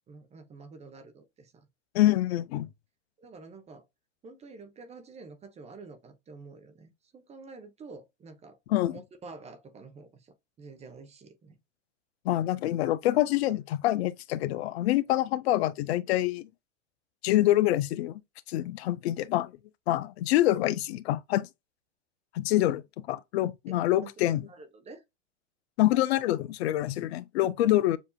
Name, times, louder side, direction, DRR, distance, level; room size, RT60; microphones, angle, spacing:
voice 1, 0.1-1.7 3.2-3.8 4.2-8.6 8.9-11.6 24.0-24.1 24.5-25.0, right 4 dB, 20° right, 0.8 m, -48 dB
voice 2, 1.9-2.7 8.7-9.0 12.2-16.5 17.2-18.2 18.5-19.5 19.9-21.5 22.3-24.4 25.8-28.0, left 14 dB, 60° left, 0.6 m, -26 dB
7.1 x 2.7 x 2.3 m
hypercardioid pair, 130°, 36 cm